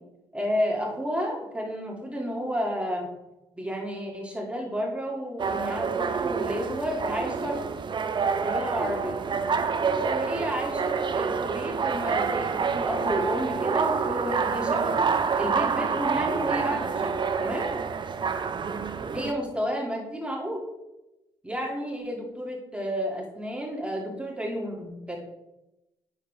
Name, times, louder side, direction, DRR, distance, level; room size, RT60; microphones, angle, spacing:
voice 1, 0.3-3.1 3.5-7.6 8.4-9.2 10.0-15.0 15.3-17.7 19.1-20.6 21.4-25.2, equal, 10° right, -1 dB, 2.6 m, -31 dB
sound 1, 5.4-19.3, right 5 dB, 45° right, 0.6 m, -27 dB
8.9 x 4.6 x 3.6 m, 0.94 s
supercardioid pair, 50°, 11 cm